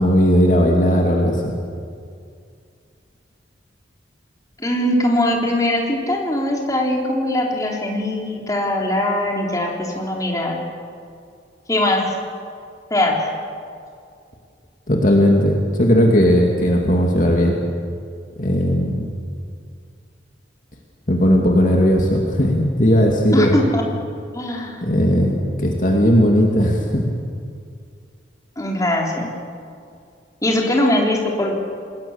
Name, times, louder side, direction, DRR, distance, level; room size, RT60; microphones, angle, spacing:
voice 1, 0.0-1.4 14.9-17.6 18.4-19.1 21.1-23.6 24.8-27.1, equal, 40° left, 0 dB, 2.5 m, -16 dB
voice 2, 4.6-10.6 11.7-12.0 12.9-13.3 23.3-23.8 24.3-24.8 28.6-29.3 30.4-31.5, left 1 dB, 20° left, -1 dB, 3.6 m, -21 dB
27.5 x 20.5 x 7.3 m, 2.3 s
head